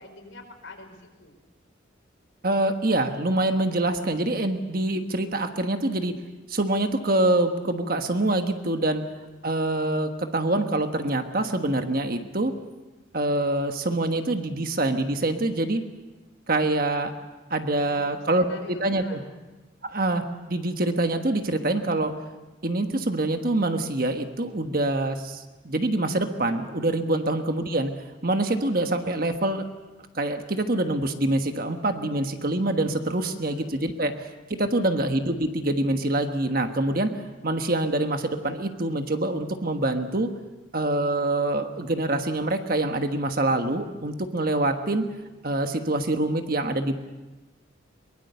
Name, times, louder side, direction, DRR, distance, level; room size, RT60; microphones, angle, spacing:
voice 1, 0.0-1.4 9.2-9.3 17.7-19.3 27.2-27.5 33.2-33.7 34.6-34.8, left 2 dB, 85° left, 3 dB, 4.7 m, -46 dB
voice 2, 2.4-6.1 6.5-9.0 9.4-12.5 13.1-15.8 16.5-17.1 17.5-19.2 19.8-22.1 22.6-27.9 28.2-29.6 30.1-37.1 37.4-40.3 40.7-45.1 45.4-46.9, right 2 dB, 45° right, 6 dB, 1.3 m, -25 dB
23.0 x 21.5 x 6.8 m, 1.1 s
head